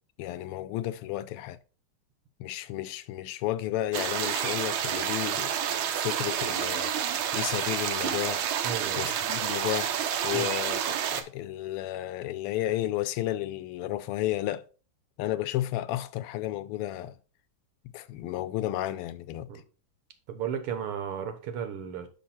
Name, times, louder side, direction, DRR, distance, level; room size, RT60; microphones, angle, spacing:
voice 1, 0.2-1.6 2.4-5.5 5.9-8.4 9.0-14.7 15.2-17.2 17.9-19.5, left 14 dB, 90° left, 1.5 m, -32 dB
sound 1, 3.9-11.2, right 9 dB, 70° right, 1.5 m, -29 dB
voice 2, 8.6-9.2 10.3-10.5 19.5-19.6 20.3-22.1, right 8 dB, 90° right, 2.0 m, -34 dB
5.9 x 5.6 x 4.3 m
omnidirectional pair, 2.4 m